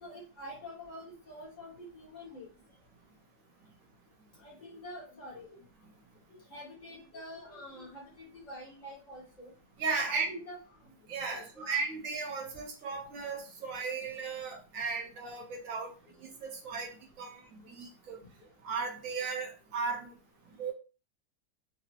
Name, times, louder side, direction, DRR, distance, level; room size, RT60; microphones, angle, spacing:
voice 1, 0.0-2.5 4.4-5.6 6.3-9.5 10.0-10.6 11.2-11.7, equal, 30° left, -2 dB, 0.9 m, -46 dB
voice 2, 9.8-10.4 11.1-15.9 16.2-16.9 17.2-18.2 18.6-20.1 20.6-20.7, right 4 dB, 55° right, 1 dB, 1.0 m, -36 dB
3.8 x 2.1 x 2.8 m, 0.34 s
omnidirectional pair, 2.0 m